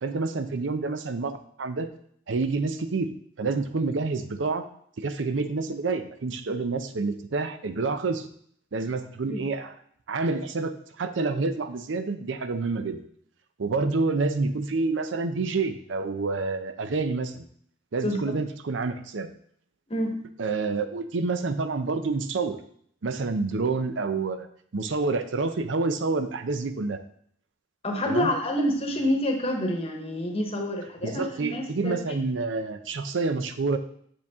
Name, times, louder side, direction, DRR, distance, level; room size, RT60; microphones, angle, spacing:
voice 1, 0.0-1.9 2.3-3.1 3.4-4.6 5.0-8.3 8.7-9.7 10.1-13.0 13.6-17.4 17.9-19.3 20.4-22.6 23.0-24.5 24.7-27.0 28.1-28.3 31.0-33.8, right 3 dB, 70° right, 9 dB, 0.5 m, -28 dB
voice 2, 27.8-32.2, left 1 dB, 30° left, 3 dB, 1.0 m, -27 dB
6.9 x 5.2 x 3.5 m, 0.63 s
head